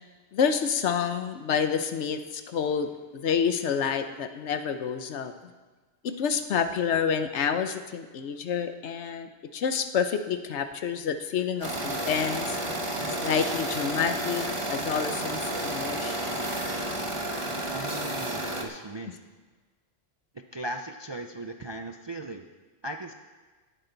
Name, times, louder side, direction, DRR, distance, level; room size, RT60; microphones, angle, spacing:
voice 1, 0.3-5.3 6.0-12.6 13.2-16.3, left 7 dB, 65° left, 9 dB, 1.1 m, -28 dB
sound 1, 11.6-18.6, right 1 dB, 25° right, 1.2 m, -31 dB
voice 2, 17.7-19.2 20.5-22.5 22.8-23.1, right 1 dB, 45° right, 5 dB, 0.3 m, -37 dB
17.5 x 10.0 x 4.0 m, 1.3 s
omnidirectional pair, 1.3 m